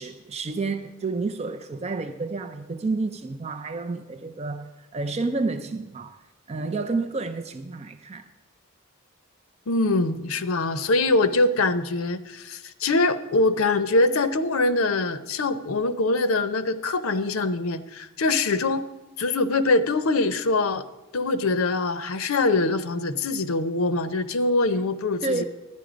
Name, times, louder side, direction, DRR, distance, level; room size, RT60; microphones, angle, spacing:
voice 1, 0.0-6.2 6.5-8.3 25.2-25.4, right 3 dB, 30° right, 0.5 m, -30 dB
voice 2, 9.7-18.9 19.2-20.8 21.1-25.4, left 2 dB, 85° left, 0.7 m, -23 dB
12.0 x 9.5 x 5.0 m
head